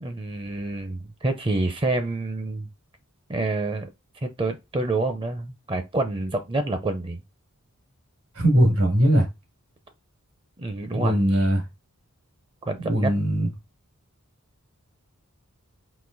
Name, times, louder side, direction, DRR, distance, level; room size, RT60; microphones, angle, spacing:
voice 1, 0.0-2.7 3.3-3.9 4.2-7.2 10.6-11.5 12.7-13.1, right 2 dB, 25° right, 0.5 m, -28 dB
voice 2, 8.4-9.3 10.9-11.6 12.8-13.5, equal, 80° right, 2.0 m, -20 dB
3.9 x 2.6 x 3.8 m
head